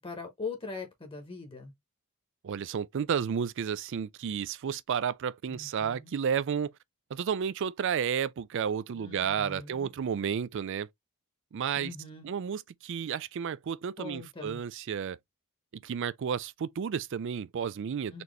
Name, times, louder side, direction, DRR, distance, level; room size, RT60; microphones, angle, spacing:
voice 1, 0.0-1.7 5.5-6.1 8.9-9.9 11.7-12.3 14.0-14.6 18.1-18.2, left 4 dB, 25° left, 1.0 m, -41 dB
voice 2, 2.4-6.7 7.1-10.9 11.5-11.9 12.2-15.2 15.8-18.2, right 7 dB, 55° right, 0.4 m, -32 dB
4.2 x 2.8 x 3.1 m
head